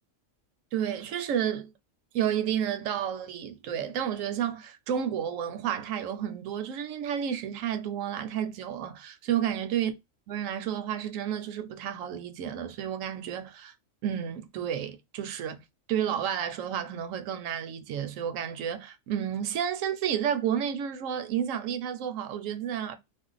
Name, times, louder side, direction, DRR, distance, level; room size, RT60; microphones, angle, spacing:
voice 1, 0.7-1.7 2.1-9.9 10.3-13.7 14.0-15.6 15.9-23.0, right 9 dB, 75° right, 0.9 m, -31 dB
2.5 x 2.0 x 3.7 m
omnidirectional pair, 1.4 m